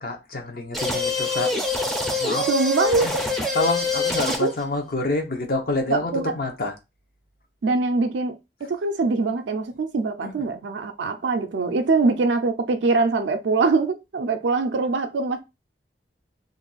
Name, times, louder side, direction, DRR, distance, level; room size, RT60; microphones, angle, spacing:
voice 1, 0.0-1.5 2.1-2.5 3.0-3.1 3.5-6.8 10.2-10.3, left 2 dB, 50° left, 0.7 m, -27 dB
sound 1, 0.7-4.6, left 2 dB, ahead, 0.4 m, -25 dB
voice 2, 2.5-3.1 4.4-4.5 5.9-6.3 7.6-15.4, right 3 dB, 75° right, 0.4 m, -23 dB
2.5 x 2.3 x 3.9 m
head